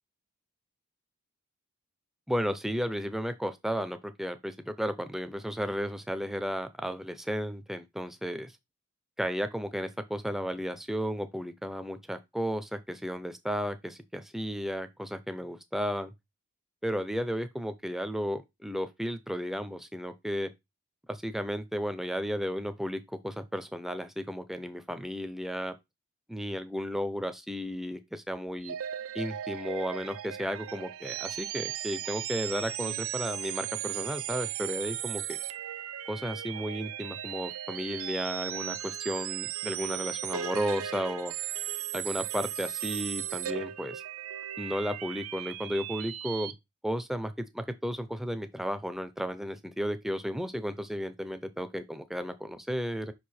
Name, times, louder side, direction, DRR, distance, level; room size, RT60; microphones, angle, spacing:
voice 1, 2.3-8.5 9.2-16.1 16.8-20.5 21.1-25.7 26.3-28.8 29.1-35.4 36.1-41.3 41.9-44.0 44.6-46.5 46.8-53.1, equal, ahead, 0.5 m, -34 dB
sound 1, 28.6-46.5, right 11 dB, 75° right, 0.5 m, -37 dB
5.5 x 4.7 x 4.2 m
head